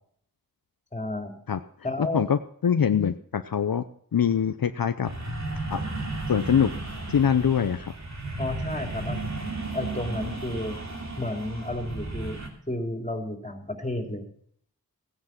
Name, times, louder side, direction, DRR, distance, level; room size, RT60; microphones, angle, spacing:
voice 1, 0.9-1.3 1.8-2.3 8.4-9.3 9.7-10.8 11.2-12.4 12.7-14.3, left 1 dB, 20° left, 4 dB, 3.2 m, -32 dB
voice 2, 2.1-3.8 4.1-5.1 5.7-5.8 6.3-6.7 7.1-7.9, left 7 dB, 70° left, 10 dB, 0.7 m, -23 dB
sound 1, 5.0-12.5, right 2 dB, 50° right, 3.0 m, -34 dB
16.0 x 9.8 x 5.9 m, 0.62 s
wide cardioid pair, 45°, 36 cm